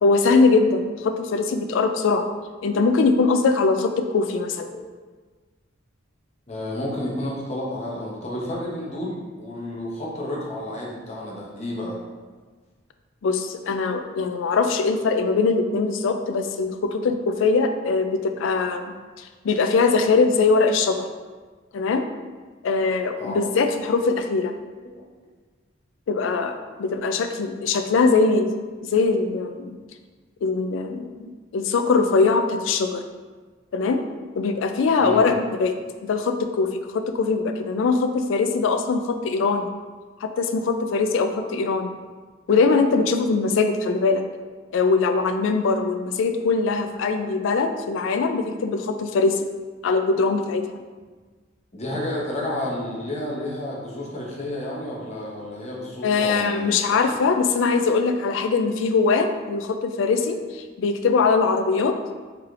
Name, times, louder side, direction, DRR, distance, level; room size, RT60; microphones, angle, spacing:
voice 1, 0.0-2.3 2.6-4.7 13.2-21.1 21.7-22.0 22.6-24.5 26.1-28.5 28.8-29.8 30.4-33.0 33.7-34.0 34.4-35.7 36.0-39.7 40.2-42.0 42.5-44.2 44.7-49.5 49.8-50.7 56.0-62.0, left 4 dB, 70° left, 7 dB, 0.3 m, -22 dB
voice 2, 6.5-12.0 23.2-23.5 35.0-35.3 50.9-51.0 51.7-57.2, left 1 dB, 35° left, -3 dB, 0.8 m, -31 dB
4.5 x 3.2 x 2.4 m, 1.4 s
head